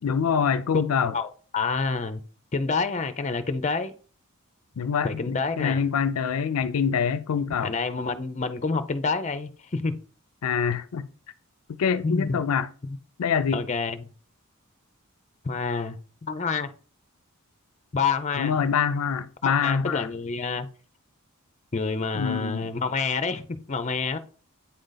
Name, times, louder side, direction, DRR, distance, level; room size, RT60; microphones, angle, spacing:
voice 1, 0.0-1.1 4.8-7.7 10.4-11.1 11.7-12.7 13.2-13.6 18.4-20.1 22.1-22.7, left 6 dB, 80° left, 0.4 m, -25 dB
voice 2, 1.5-2.2 2.5-3.9 5.0-5.8 7.6-10.0 12.0-12.4 12.8-13.0 13.5-14.1 15.4-16.7 17.9-18.6 19.4-20.7 21.7-24.2, left 4 dB, 35° left, 0.5 m, -28 dB
8.6 x 3.9 x 3.9 m
head